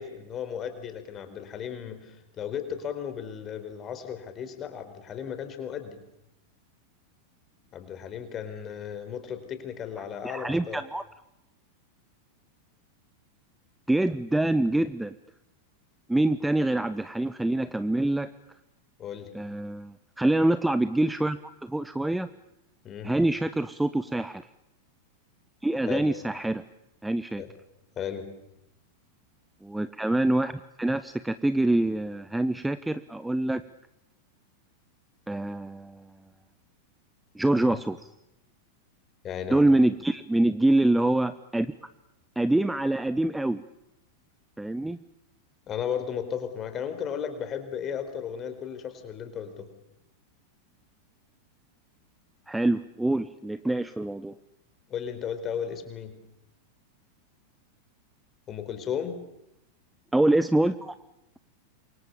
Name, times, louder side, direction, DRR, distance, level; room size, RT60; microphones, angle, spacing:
voice 1, 0.0-6.0 7.7-10.8 19.0-19.3 22.8-23.1 25.9-26.1 27.4-27.5 28.0-28.3 37.6-37.8 39.2-39.6 45.7-49.7 54.9-56.2 58.5-59.2, left 8 dB, 30° left, 9 dB, 4.5 m, -35 dB
voice 2, 10.2-11.0 13.9-15.1 16.1-18.3 19.3-22.3 23.0-24.4 25.6-26.6 27.0-27.4 29.6-30.5 30.8-33.6 35.3-36.1 37.3-38.1 39.5-41.7 42.4-43.6 44.6-45.0 52.5-54.3 60.1-60.9, right 1 dB, 5° right, 13 dB, 0.9 m, -25 dB
28.5 x 24.0 x 7.2 m, 0.86 s
figure-of-eight pair, 90°, 0 cm